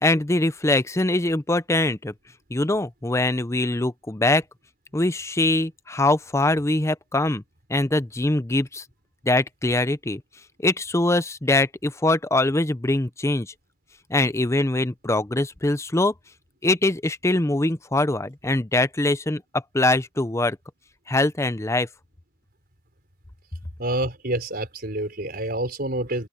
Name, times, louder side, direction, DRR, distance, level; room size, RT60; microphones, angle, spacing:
voice 1, 0.0-2.1 2.5-4.4 4.9-7.4 7.7-8.8 9.2-10.2 10.6-13.5 14.1-16.1 16.6-20.6 21.1-21.9, left 2 dB, 15° left, 0.7 m, -23 dB
voice 2, 23.8-26.3, right 1 dB, 55° right, 4.9 m, -27 dB
open air
head